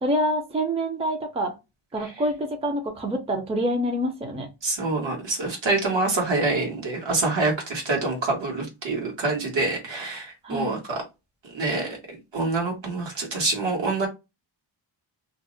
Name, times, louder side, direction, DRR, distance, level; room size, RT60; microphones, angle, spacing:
voice 1, 0.0-1.5 1.9-4.5 10.4-10.8, equal, 15° right, 4 dB, 0.5 m, -26 dB
voice 2, 4.6-11.0 11.5-14.1, right 3 dB, 70° right, 1 dB, 1.3 m, -26 dB
2.5 x 2.0 x 3.8 m, 0.25 s
wide cardioid pair, 145°, 47 cm